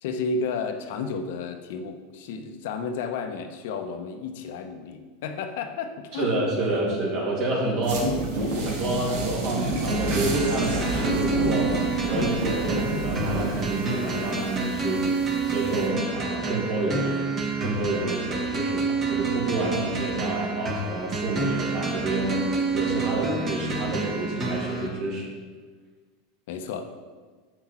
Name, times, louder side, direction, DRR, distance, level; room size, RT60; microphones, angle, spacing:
voice 1, 0.0-6.8 7.9-8.1 26.5-26.8, left 4 dB, 70° left, 7 dB, 0.8 m, -32 dB
voice 2, 6.1-8.1 8.6-11.8 12.1-17.3 17.6-25.3, right 2 dB, 50° right, -3 dB, 2.5 m, -29 dB
sound 1, 7.8-15.9, right 1 dB, 75° right, 1.7 m, -29 dB
sound 2, 9.9-24.9, right 4 dB, 30° right, 1.3 m, -29 dB
6.9 x 6.1 x 4.4 m, 1.5 s
supercardioid pair, 125°, 0 cm